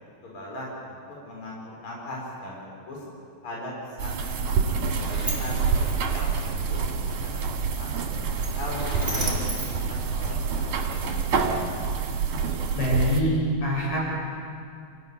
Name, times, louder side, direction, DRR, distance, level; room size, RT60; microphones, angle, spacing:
voice 1, 0.2-3.0 3.4-5.7 6.1-8.0 8.3-9.4 9.9-11.6, left 1 dB, 35° left, -4 dB, 5.7 m, -39 dB
sound 1, 4.0-13.2, right 5 dB, 60° right, 3.4 m, -27 dB
Sliding door, 4.5-10.7, right 1 dB, 10° right, 4.1 m, -36 dB
voice 2, 12.7-13.3 13.6-14.0, equal, 70° left, -4 dB, 9.0 m, -24 dB
28.5 x 15.0 x 9.8 m, 2.3 s
omnidirectional pair, 4.2 m